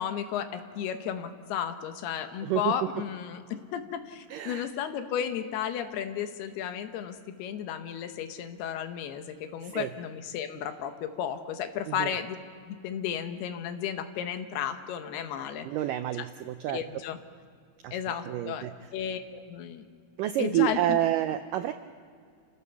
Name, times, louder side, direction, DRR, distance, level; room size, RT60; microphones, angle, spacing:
voice 1, 0.0-12.4 12.7-15.9 16.7-17.2 17.9-18.7 18.9-19.8 20.4-21.0, left 9 dB, 80° left, 8 dB, 3.1 m, -34 dB
voice 2, 2.4-2.7 4.3-4.7 9.6-9.9 11.9-12.1 15.6-16.8 17.8-18.0 18.3-18.7 20.2-21.7, right 13 dB, 85° right, 9 dB, 1.9 m, -29 dB
29.0 x 15.5 x 7.0 m, 2.1 s
omnidirectional pair, 4.5 m